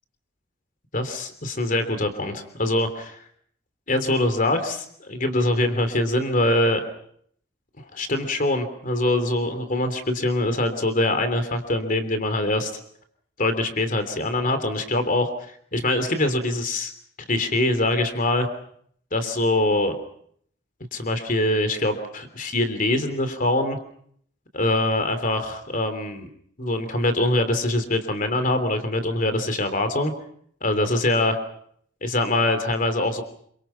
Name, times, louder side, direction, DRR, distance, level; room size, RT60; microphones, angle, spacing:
voice 1, 0.9-3.2 3.9-6.8 7.9-12.7 13.4-15.3 15.7-16.9 17.3-18.5 19.1-19.9 20.9-23.8 24.5-26.3 26.6-30.1 30.6-31.4 32.0-33.2, left 1 dB, 45° left, 9 dB, 3.3 m, -23 dB
28.0 x 25.5 x 5.8 m, 0.65 s
head